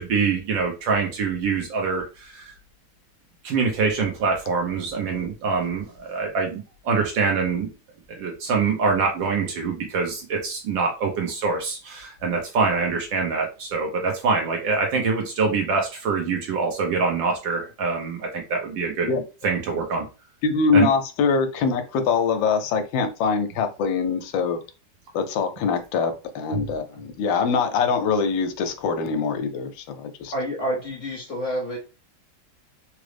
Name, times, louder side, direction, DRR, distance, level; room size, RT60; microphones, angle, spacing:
voice 1, 0.0-2.5 3.4-7.7 8.2-19.1 19.4-20.0 20.7-20.9 26.5-26.6, right 4 dB, 75° right, 1 dB, 1.4 m, -25 dB
voice 2, 20.4-24.6 25.1-30.3, left 5 dB, 80° left, 7 dB, 1.3 m, -23 dB
voice 3, 30.3-31.8, equal, 50° left, -1 dB, 1.0 m, -28 dB
3.8 x 2.0 x 3.2 m, 0.31 s
omnidirectional pair, 2.1 m